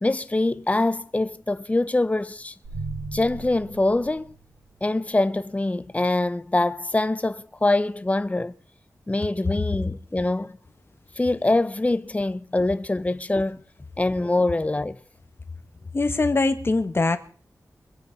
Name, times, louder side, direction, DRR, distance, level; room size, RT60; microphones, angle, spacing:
voice 1, 0.0-2.5 3.1-4.3 4.8-8.5 9.1-10.6 11.2-13.6 14.0-15.0, left 2 dB, 20° left, 0.8 m, -24 dB
sound 1, 2.6-4.9, right 3 dB, 75° right, 7.0 m, -37 dB
voice 2, 15.9-17.2, left 3 dB, 40° left, 1.6 m, -22 dB
23.5 x 8.6 x 5.3 m
wide cardioid pair, 100°, 6 cm